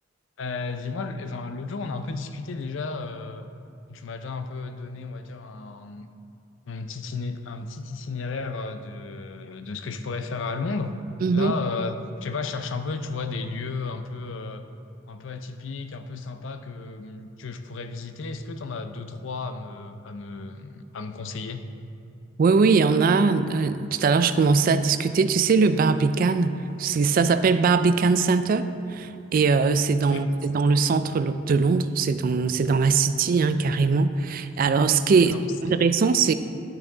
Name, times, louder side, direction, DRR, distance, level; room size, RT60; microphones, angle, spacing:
voice 1, 0.4-3.5 3.9-6.1 6.7-10.9 11.3-14.6 15.1-21.6 30.1-30.2 35.3-35.5, left 4 dB, 70° left, 8 dB, 0.5 m, -33 dB
voice 2, 11.2-11.5 22.4-35.3 35.6-36.3, right 4 dB, 45° right, 11 dB, 0.3 m, -21 dB
10.0 x 6.1 x 3.9 m, 2.6 s
head